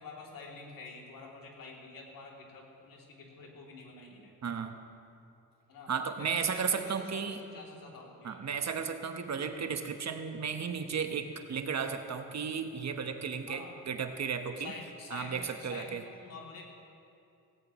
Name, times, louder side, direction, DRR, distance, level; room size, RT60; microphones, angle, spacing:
voice 1, 0.0-4.3 5.7-8.4 13.5-13.7 14.6-16.6, left 3 dB, 70° left, -2 dB, 3.0 m, -48 dB
voice 2, 4.4-4.7 5.9-7.4 8.2-14.7 15.1-16.0, right 6 dB, 50° right, 6 dB, 1.2 m, -34 dB
17.5 x 17.5 x 3.1 m, 2.6 s
cardioid pair, 70°, 35 cm